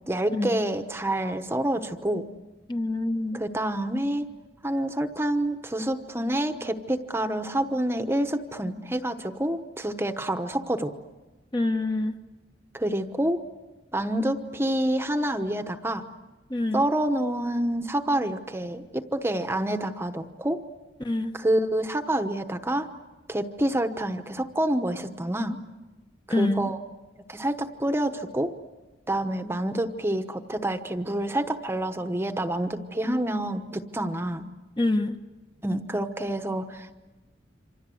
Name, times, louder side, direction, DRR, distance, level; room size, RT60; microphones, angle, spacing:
voice 1, 0.1-2.2 3.3-4.3 4.6-10.9 12.7-13.4 13.9-16.0 16.7-20.6 21.3-22.9 23.3-25.6 26.3-26.8 27.3-28.5 29.1-34.4 35.6-37.0, right 1 dB, 15° right, 8 dB, 1.0 m, -27 dB
voice 2, 2.7-3.4 11.5-12.2 16.5-16.8 21.0-21.3 26.3-26.6 34.8-35.2, left 2 dB, 25° left, 6 dB, 1.0 m, -26 dB
28.0 x 26.0 x 7.8 m, 1.2 s
head